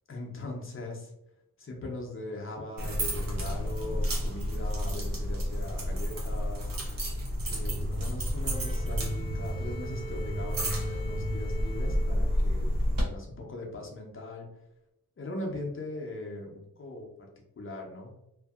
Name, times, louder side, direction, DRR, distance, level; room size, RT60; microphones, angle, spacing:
voice 1, 0.1-1.1 1.6-7.1 7.4-12.7 13.0-14.5 15.2-17.3 17.6-18.1, left 2 dB, 35° left, 0 dB, 0.7 m, -40 dB
sound 1, 2.8-13.0, equal, 70° right, 0.8 m, -30 dB
Bowed string instrument, 8.3-12.7, right 2 dB, 15° left, 0.9 m, -44 dB
2.6 x 2.5 x 2.4 m, 0.83 s
wide cardioid pair, 130°, 35 cm